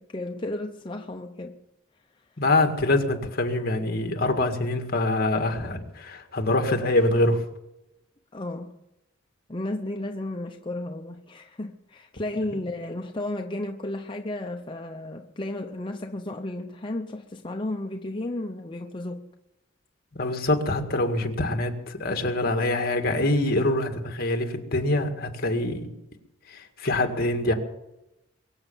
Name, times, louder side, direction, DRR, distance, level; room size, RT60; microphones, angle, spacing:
voice 1, 0.0-1.6 8.3-8.8 9.5-19.3, left 1 dB, 25° left, 0.8 m, -33 dB
voice 2, 2.4-7.5 20.1-25.9 26.5-27.5, left 2 dB, 50° left, 2.0 m, -25 dB
23.0 x 8.0 x 7.2 m
head